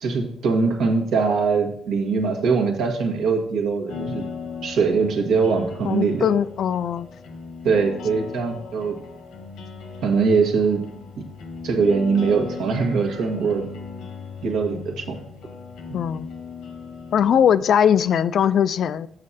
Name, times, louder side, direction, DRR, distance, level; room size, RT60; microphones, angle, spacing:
voice 1, 0.0-4.2 4.6-6.3 7.6-8.9 10.0-10.8 11.2-11.3 11.6-13.7 14.4-15.2, right 5 dB, 80° right, 1.4 m, -22 dB
sound 1, 3.9-17.6, left 5 dB, 85° left, 1.4 m, -37 dB
voice 2, 5.8-7.1 14.7-14.8 15.9-16.3 17.1-19.1, left 8 dB, 65° left, 0.3 m, -20 dB
6.5 x 6.1 x 4.1 m
cardioid pair, 90°, 0 cm